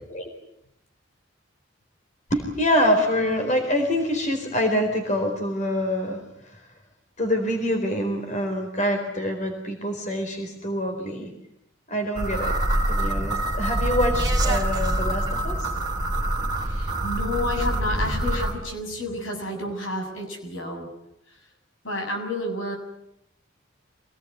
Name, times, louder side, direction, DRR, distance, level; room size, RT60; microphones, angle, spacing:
voice 1, 2.3-6.2 7.2-11.3 11.9-12.6 12.9-15.7, equal, 40° left, 4 dB, 4.2 m, -25 dB
sound 1, 12.2-18.5, right 1 dB, 20° right, 3.4 m, -25 dB
voice 2, 16.6-20.9 21.8-22.8, left 1 dB, 85° left, 4 dB, 7.4 m, -30 dB
27.0 x 19.0 x 9.4 m, 0.78 s
head